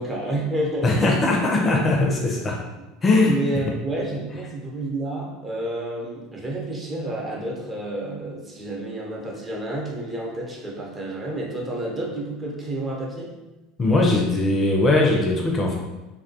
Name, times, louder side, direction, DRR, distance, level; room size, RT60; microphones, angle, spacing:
voice 1, 0.0-0.9 3.2-13.3, right 1 dB, 25° right, -2 dB, 0.7 m, -30 dB
voice 2, 0.8-2.6 3.0-3.4 13.8-15.8, left 2 dB, 30° left, 0 dB, 0.4 m, -20 dB
2.2 x 2.2 x 2.6 m, 1.1 s
hypercardioid pair, 75°, 0 cm